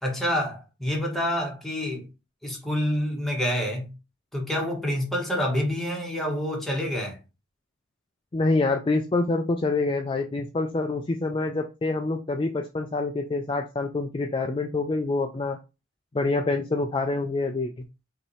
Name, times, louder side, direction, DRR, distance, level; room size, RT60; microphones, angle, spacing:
voice 1, 0.0-2.1 2.4-3.9 4.3-7.2, equal, ahead, 1.2 m, -27 dB
voice 2, 8.3-15.6 16.1-17.8, left 3 dB, 25° left, 0.3 m, -26 dB
5.5 x 2.8 x 3.1 m
head